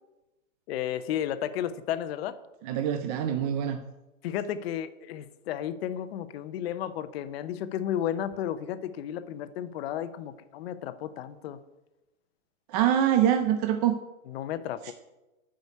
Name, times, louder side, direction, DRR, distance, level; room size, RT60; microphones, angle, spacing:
voice 1, 0.7-2.4 4.2-11.6 14.3-14.9, left 10 dB, 45° left, 12 dB, 0.9 m, -33 dB
voice 2, 2.6-3.8 12.7-14.0 14.8-14.9, right 10 dB, 30° right, 7 dB, 0.6 m, -24 dB
11.0 x 5.2 x 8.3 m, 1.0 s
hypercardioid pair, 145°, 41 cm